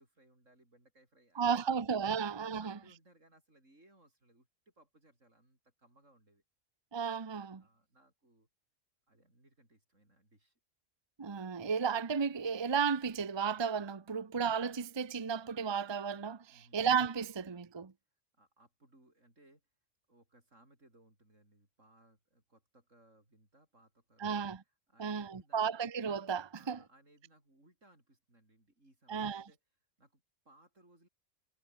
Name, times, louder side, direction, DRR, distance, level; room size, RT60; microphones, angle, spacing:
voice 1, 0.0-6.4 7.5-8.5 9.1-10.6 16.5-16.8 18.3-19.7 20.1-24.4 24.9-25.8 26.5-29.6 30.0-31.1, right 1 dB, 85° right, 8.4 m, -66 dB
voice 2, 1.4-2.8 6.9-7.6 11.2-17.9 24.2-24.6 25.0-26.8 29.1-29.5, right 6 dB, 25° right, 0.7 m, -33 dB
omnidirectional pair, 1.3 m